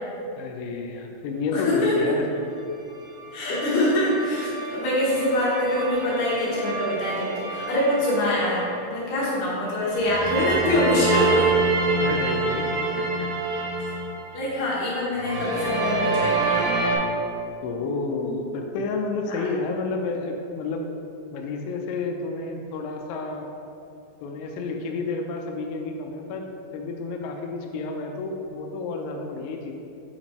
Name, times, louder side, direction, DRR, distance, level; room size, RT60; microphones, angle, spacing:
voice 1, 0.4-2.3 12.0-13.7 17.6-20.8 21.3-23.5 24.2-26.5 26.7-29.7, left 3 dB, 85° left, 1 dB, 2.9 m, -30 dB
voice 2, 1.5-1.9 3.3-8.6 8.9-11.5 14.3-16.8 19.3-19.4, left 1 dB, 70° left, -7 dB, 2.8 m, -24 dB
sound 1, 3.1-8.9 9.9-14.8 15.1-17.0, right 3 dB, 75° right, 2.9 m, -27 dB
8.5 x 4.3 x 3.0 m, 2.7 s
omnidirectional pair, 5.5 m